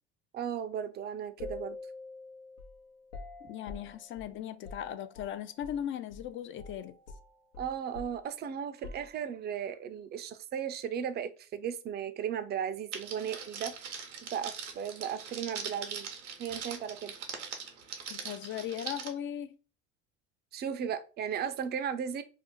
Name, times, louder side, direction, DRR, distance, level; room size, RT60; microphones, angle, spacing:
voice 1, 0.3-1.8 7.6-13.8 14.2-16.1 16.4-17.1 20.5-22.2, right 8 dB, 30° right, 0.4 m, -36 dB
sound 1, 1.4-5.8 6.1-6.3 6.6-9.6, left 3 dB, 80° left, 0.8 m, -47 dB
voice 2, 3.5-7.0 18.1-19.6, left 10 dB, 35° left, 0.4 m, -38 dB
Crackle, 12.9-19.1, right 7 dB, 85° right, 0.8 m, -41 dB
2.7 x 2.0 x 3.7 m
hypercardioid pair, 75°, 34 cm